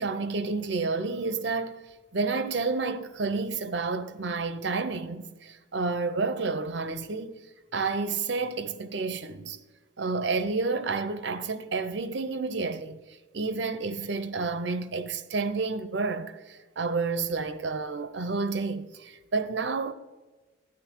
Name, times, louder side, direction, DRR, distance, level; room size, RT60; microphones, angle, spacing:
voice 1, 0.0-1.8 2.1-7.3 7.7-9.6 10.0-13.0 13.3-19.9, right 4 dB, 75° right, 0.8 m, -30 dB
12.0 x 9.6 x 4.6 m
head